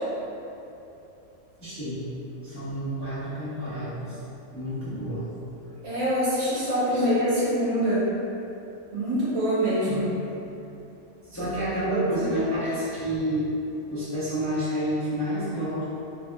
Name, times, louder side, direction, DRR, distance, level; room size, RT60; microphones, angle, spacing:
voice 1, 1.6-4.2 4.5-5.3 6.9-7.0 9.9-10.1 11.2-13.5 13.9-15.8, right 1 dB, 20° left, -14 dB, 0.5 m, -29 dB
voice 2, 5.8-8.0 8.9-10.1 11.9-12.1, equal, 60° right, -10 dB, 1.2 m, -24 dB
3.2 x 2.7 x 2.2 m, 2.9 s
omnidirectional pair, 1.5 m